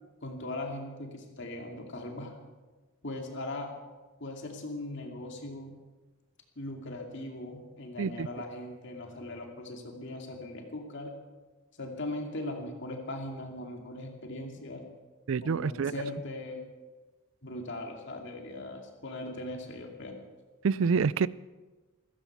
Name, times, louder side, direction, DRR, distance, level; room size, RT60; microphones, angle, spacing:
voice 1, 0.2-2.3 3.0-3.8 4.2-5.8 6.6-11.1 11.8-14.8 15.4-16.6 17.4-20.2, left 2 dB, 55° left, 2 dB, 2.5 m, -39 dB
voice 2, 15.3-15.9 20.6-21.3, right 5 dB, 65° right, 20 dB, 0.4 m, -27 dB
15.0 x 15.0 x 6.0 m, 1.2 s
head